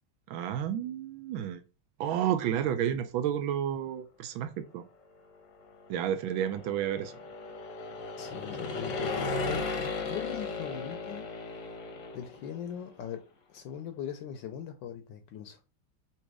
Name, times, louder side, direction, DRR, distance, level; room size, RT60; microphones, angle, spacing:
voice 1, 0.3-1.6 2.0-4.8 5.9-7.1, right 10 dB, 80° right, 1.3 m, -31 dB
sound 1, 5.7-12.6, left 3 dB, 55° left, 0.9 m, -36 dB
voice 2, 8.2-11.3 12.1-13.2 13.5-15.6, left 9 dB, 75° left, 1.2 m, -40 dB
4.1 x 2.8 x 4.7 m
omnidirectional pair, 2.2 m